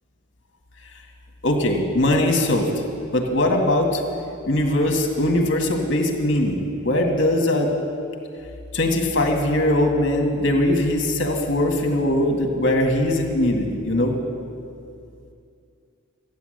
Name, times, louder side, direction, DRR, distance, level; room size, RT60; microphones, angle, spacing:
voice 1, 1.4-2.7 3.1-4.0 4.4-7.7 8.7-14.1, left 1 dB, 55° left, 1 dB, 2.0 m, -21 dB
15.0 x 9.5 x 8.0 m, 2.5 s
head